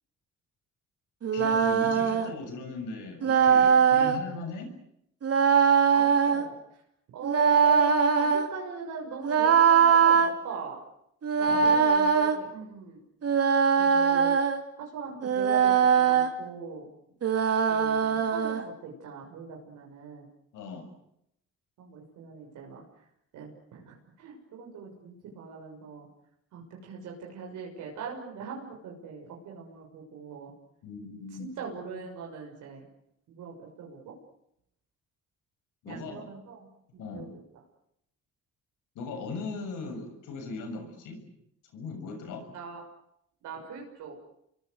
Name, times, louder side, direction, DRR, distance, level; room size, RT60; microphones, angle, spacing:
Singing Scale - A Major, 1.2-2.3 3.2-4.2 5.2-6.4 7.2-8.5 9.2-10.3 11.2-12.4 13.2-14.6 15.2-16.3 17.2-18.6, right 6 dB, 50° right, 3.0 m, -22 dB
voice 1, 1.3-4.7 11.5-11.7 20.5-20.9 30.8-31.5 35.8-36.3 37.0-37.3 39.0-41.2 41.7-42.4, left 3 dB, 90° left, 6 dB, 7.0 m, -39 dB
voice 2, 5.9-6.8 7.1-10.8 11.4-13.0 13.8-14.3 14.8-16.9 17.7-20.3 21.8-22.8 23.3-26.1 26.5-30.5 31.4-32.9 33.3-34.1 35.8-36.7 36.9-37.4 42.5-42.8 43.4-44.2, right 5 dB, 85° right, -1 dB, 6.5 m, -41 dB
29.0 x 23.5 x 8.1 m, 0.78 s
cardioid pair, 90°, 30 cm